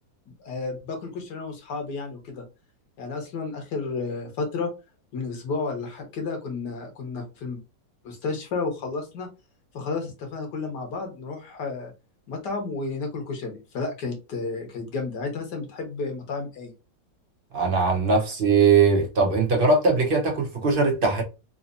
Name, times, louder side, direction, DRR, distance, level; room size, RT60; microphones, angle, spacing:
voice 1, 0.3-2.4 3.0-4.7 5.1-7.6 8.0-9.3 9.7-11.9 12.3-16.7, left 4 dB, 65° left, 1.7 m, -32 dB
voice 2, 17.5-21.2, right 4 dB, 40° right, 0.9 m, -20 dB
3.9 x 2.8 x 2.5 m
omnidirectional pair, 2.0 m